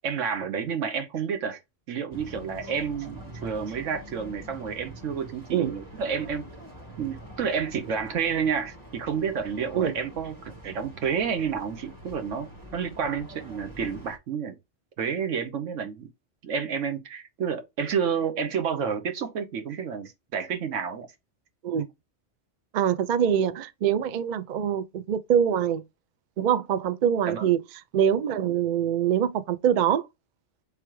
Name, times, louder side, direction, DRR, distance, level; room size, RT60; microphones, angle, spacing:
voice 1, 0.0-1.6 1.9-6.5 7.0-14.6 15.0-16.1 16.4-21.1 27.3-27.5, right 6 dB, 85° right, 1.2 m, -30 dB
sound 1, 2.1-14.2, equal, 20° right, 1.1 m, -45 dB
voice 2, 22.7-25.8 26.4-27.6 27.9-30.1, right 9 dB, 55° right, 0.5 m, -24 dB
3.5 x 3.3 x 4.5 m
omnidirectional pair, 1.3 m